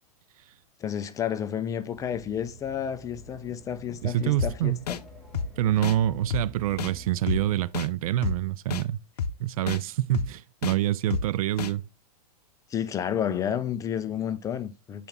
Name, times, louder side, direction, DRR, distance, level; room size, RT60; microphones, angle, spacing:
voice 1, 0.8-5.0 12.7-15.1, left 9 dB, 15° left, 0.4 m, -31 dB
sound 1, 1.9-7.6, equal, ahead, 1.9 m, -48 dB
voice 2, 4.0-4.8 5.6-9.0 9.4-11.8, right 13 dB, 65° right, 0.4 m, -26 dB
sound 2, 4.4-4.5 4.9-5.0 5.3-5.5 5.8-6.0 6.3-6.4 6.8-6.9 7.3-7.4 7.7-7.9 8.2-8.4 8.7-8.8 9.2-9.3 9.7-9.8 10.1-10.3 10.6-10.8 11.1-11.2 11.6-11.7, left 6 dB, 85° left, 0.6 m, -29 dB
7.0 x 4.3 x 3.6 m
hypercardioid pair, 125°, 20 cm